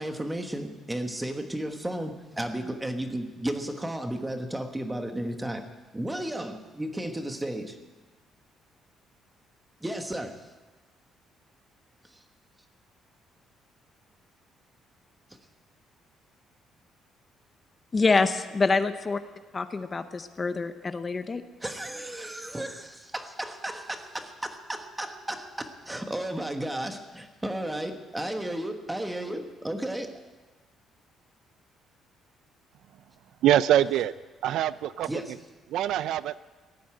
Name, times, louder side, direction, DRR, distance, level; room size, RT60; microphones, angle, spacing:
voice 1, 0.0-5.6 5.9-7.7 9.8-10.3 21.6-30.2 35.1-35.4, right 1 dB, 10° right, 6 dB, 1.3 m, -33 dB
voice 2, 17.9-19.2 19.5-21.4, left 4 dB, 25° left, 10 dB, 0.7 m, -26 dB
voice 3, 33.4-34.1 34.4-35.1 35.7-36.4, right 12 dB, 70° right, 16 dB, 0.4 m, -23 dB
17.0 x 9.3 x 8.8 m, 1.3 s
cardioid pair, 155°, 0 cm